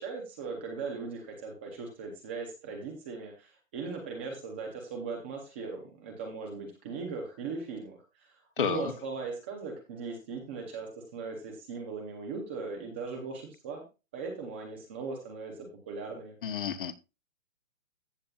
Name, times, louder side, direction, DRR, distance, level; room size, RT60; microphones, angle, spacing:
voice 1, 0.0-8.3 8.6-13.8 14.1-16.4, right 4 dB, 10° right, 0.6 m, -39 dB
voice 2, 8.6-8.9 16.4-17.0, left 7 dB, 40° left, 1.0 m, -31 dB
14.5 x 7.2 x 2.4 m
hypercardioid pair, 170°, 39 cm